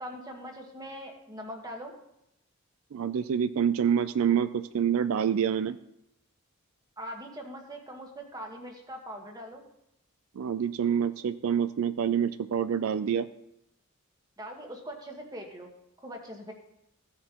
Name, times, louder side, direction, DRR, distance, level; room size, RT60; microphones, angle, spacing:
voice 1, 0.0-1.9 7.0-9.6 14.4-15.7 16.0-16.5, equal, 20° right, 2 dB, 1.4 m, -41 dB
voice 2, 2.9-5.8 10.4-13.3, right 8 dB, 75° right, 12 dB, 0.4 m, -27 dB
15.5 x 7.3 x 3.0 m, 0.83 s
head